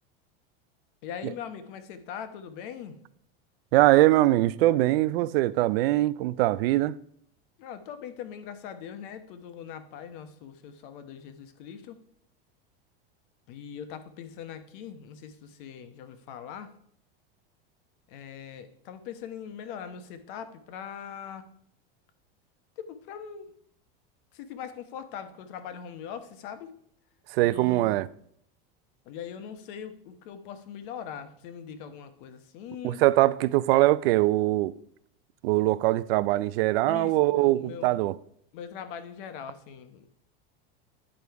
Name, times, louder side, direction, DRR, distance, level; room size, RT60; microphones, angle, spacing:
voice 1, 1.0-3.0 7.6-12.0 13.5-16.7 18.1-21.5 22.8-23.5 24.3-26.8 27.4-28.0 29.0-33.0 36.8-37.9 38.5-40.1, left 8 dB, 60° left, 1.1 m, -41 dB
voice 2, 3.7-6.9 27.3-28.1 32.8-34.7 35.4-38.1, right 17 dB, 75° right, 0.5 m, -22 dB
9.9 x 5.1 x 4.6 m
supercardioid pair, 155°, 29 cm